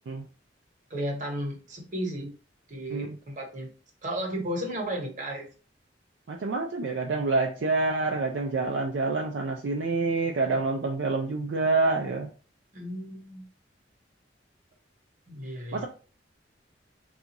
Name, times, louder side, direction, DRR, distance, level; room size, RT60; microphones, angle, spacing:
voice 1, 0.9-2.3 2.7-3.7 4.0-5.4 12.7-13.4 15.3-15.9, right 1 dB, 45° right, 1 dB, 1.0 m, -34 dB
voice 2, 6.3-12.3 15.7-15.9, right 3 dB, 70° right, 1 dB, 0.4 m, -27 dB
3.6 x 2.4 x 2.9 m, 0.38 s
head